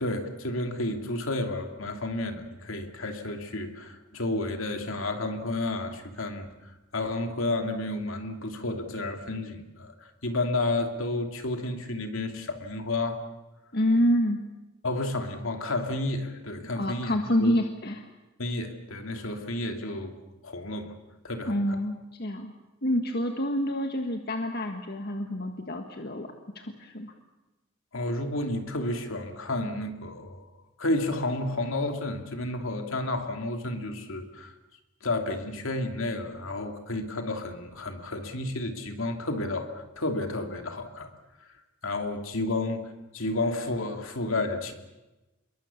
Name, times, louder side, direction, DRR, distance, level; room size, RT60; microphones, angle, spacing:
voice 1, 0.0-6.5 6.9-9.9 10.2-13.2 14.8-17.5 18.4-20.1 20.4-20.9 21.2-21.5 27.9-30.4 30.8-34.5 35.0-41.1 41.8-42.8 43.1-44.7, left 2 dB, 65° left, 5 dB, 2.8 m, -31 dB
voice 2, 13.7-14.4 16.7-18.0 21.5-22.5 22.8-26.3 26.5-27.1, equal, 45° left, 4 dB, 1.7 m, -27 dB
27.0 x 22.5 x 7.2 m, 1.0 s
head